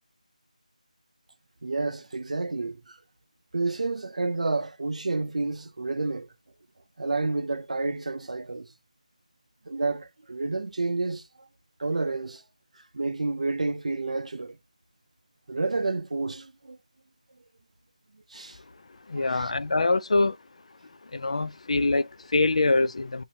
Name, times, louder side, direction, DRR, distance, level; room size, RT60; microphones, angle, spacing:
voice 1, 1.6-3.0 3.5-6.3 7.0-8.7 9.7-11.5 11.8-12.4 12.8-14.6 15.5-16.8 18.3-18.6 19.1-19.5, right 3 dB, 60° right, 0.5 m, -30 dB
voice 2, 19.1-20.4 21.1-23.2, left 3 dB, 55° left, 0.4 m, -24 dB
7.0 x 2.7 x 2.7 m
figure-of-eight pair, 170°, 4 cm